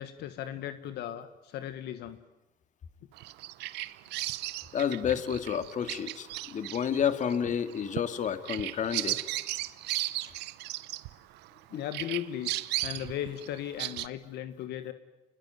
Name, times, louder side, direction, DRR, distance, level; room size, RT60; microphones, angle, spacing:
voice 1, 0.0-2.2 11.7-12.5 12.8-14.9, left 11 dB, 80° left, 11 dB, 1.5 m, -37 dB
Bird vocalization bird call bird song, 3.2-11.6 11.9-14.1, right 17 dB, 90° right, 1.0 m, -36 dB
voice 2, 4.7-9.2 11.7-11.8, left 8 dB, 45° left, 11 dB, 2.1 m, -30 dB
29.5 x 21.0 x 9.5 m, 1.0 s
cardioid pair, 110°, 17 cm